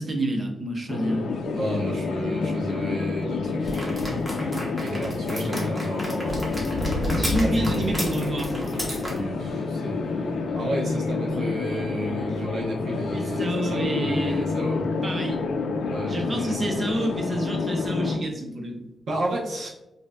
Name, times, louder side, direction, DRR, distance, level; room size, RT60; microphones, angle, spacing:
voice 1, 0.0-1.3 7.1-8.6 13.1-15.4 16.1-18.9, right 1 dB, 30° right, 3 dB, 0.6 m, -29 dB
sound 1, 0.9-18.2, left 4 dB, 70° left, 0.4 m, -29 dB
voice 2, 1.5-4.2 4.8-6.6 7.4-7.8 9.1-14.9 15.9-16.6 19.1-19.7, equal, 70° right, -3 dB, 0.8 m, -31 dB
sound 2, 3.6-9.2, equal, 10° right, 1.0 m, -31 dB
5.3 x 2.6 x 2.2 m, 1.0 s
wide cardioid pair, 170°, 0 cm